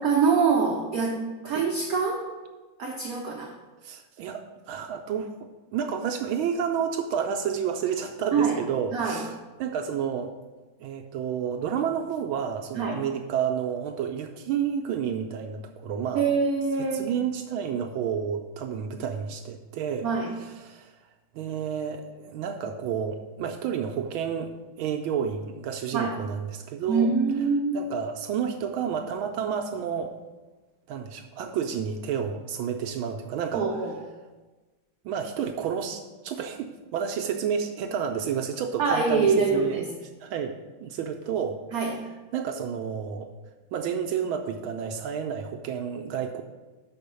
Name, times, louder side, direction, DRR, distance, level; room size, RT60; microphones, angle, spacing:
voice 1, 0.0-2.3 2.8-3.5 8.3-8.6 8.9-9.2 12.7-13.0 16.1-17.1 20.0-20.3 25.9-26.1 26.9-27.8 33.5-33.9 38.8-39.9 41.7-42.0, right 5 dB, 60° right, 0 dB, 1.0 m, -25 dB
voice 2, 3.8-5.3 5.7-9.3 9.6-10.3 10.8-16.3 16.9-21.1 21.3-27.5 27.7-30.2 30.9-33.7 35.0-39.8 40.2-41.9 42.3-43.3 43.7-46.4, right 7 dB, 75° right, 5 dB, 1.3 m, -30 dB
6.2 x 5.0 x 6.8 m, 1.2 s
omnidirectional pair, 2.4 m